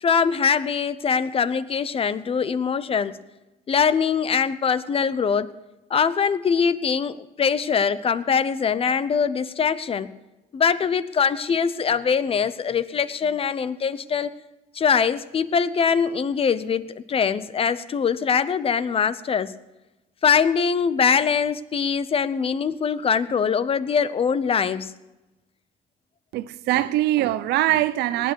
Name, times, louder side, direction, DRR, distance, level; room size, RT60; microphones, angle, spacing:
voice 1, 0.0-3.2 3.7-5.5 5.9-10.1 10.5-14.3 14.7-19.5 20.2-24.9, left 6 dB, 35° left, 0.7 m, -22 dB
voice 2, 26.3-28.3, right 14 dB, 80° right, 0.8 m, -22 dB
19.0 x 8.8 x 6.3 m
cardioid pair, 110°, 17 cm